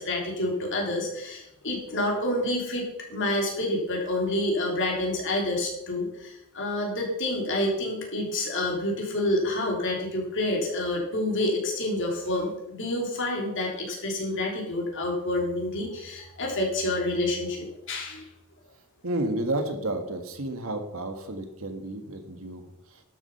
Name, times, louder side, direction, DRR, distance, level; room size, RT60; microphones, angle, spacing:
voice 1, 0.0-18.3, left 1 dB, 60° left, -1 dB, 3.5 m, -28 dB
voice 2, 19.0-23.0, right 1 dB, 70° right, 6 dB, 1.6 m, -31 dB
12.0 x 7.2 x 5.7 m, 0.83 s
head